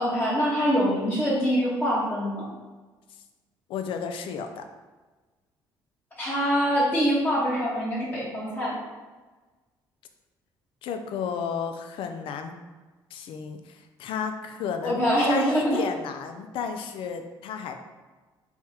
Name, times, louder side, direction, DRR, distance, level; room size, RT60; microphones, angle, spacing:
voice 1, 0.0-2.4 6.2-8.8 14.8-15.8, equal, 20° left, -7 dB, 1.0 m, -24 dB
voice 2, 3.7-4.6 10.8-12.5 13.1-17.7, left 6 dB, 70° left, 6 dB, 0.4 m, -33 dB
3.4 x 2.3 x 4.2 m, 1.3 s
cardioid pair, 95°, 9 cm